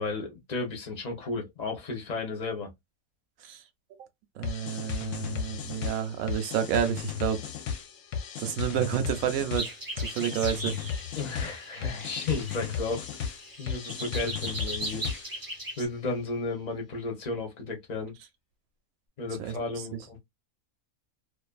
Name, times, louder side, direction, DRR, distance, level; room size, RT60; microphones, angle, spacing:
voice 1, 0.0-2.7 11.1-13.1 13.6-15.1 15.8-18.1 19.2-20.2, left 3 dB, 40° left, 0.7 m, -33 dB
sound 1, 4.4-15.5, left 7 dB, 70° left, 0.8 m, -35 dB
voice 2, 4.4-7.4 8.4-10.7 19.4-19.5, right 9 dB, 75° right, 1.0 m, -30 dB
sound 2, 9.5-15.9, right 1 dB, 20° right, 0.6 m, -39 dB
2.5 x 2.4 x 2.3 m
omnidirectional pair, 1.5 m